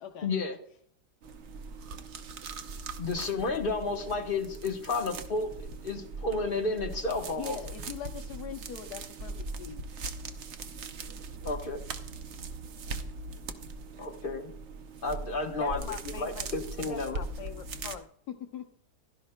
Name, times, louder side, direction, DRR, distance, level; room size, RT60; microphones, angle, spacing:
voice 1, 0.2-0.6 3.0-5.5 5.8-7.6 11.4-11.8 14.0-14.5 15.0-15.8 16.2-17.2, left 3 dB, 35° left, 1.2 m, -31 dB
sound 1, 1.2-17.9, right 3 dB, 55° right, 0.8 m, -40 dB
voice 2, 7.4-9.8 18.3-18.7, left 8 dB, 70° left, 1.4 m, -41 dB
voice 3, 15.6-16.5 16.9-18.1, left 5 dB, 50° left, 0.4 m, -42 dB
16.0 x 12.0 x 2.2 m
omnidirectional pair, 1.8 m